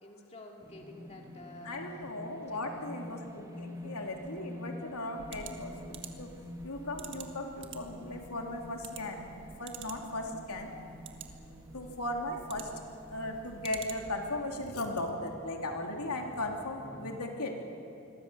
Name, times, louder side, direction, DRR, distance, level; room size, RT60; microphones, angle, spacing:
voice 1, 0.0-1.8 2.5-2.9, left 2 dB, 30° left, 1 dB, 2.4 m, -50 dB
sound 1, 0.6-17.2, left 1 dB, 15° right, 1.4 m, -49 dB
voice 2, 1.6-5.7 6.2-6.3 6.6-9.2 9.6-10.7 11.7-12.6 13.1-17.5, left 1 dB, 90° left, 2 dB, 3.0 m, -37 dB
sound 2, 5.2-14.3, right 6 dB, 55° right, 1.7 m, -49 dB
27.5 x 22.0 x 7.0 m, 2.7 s
head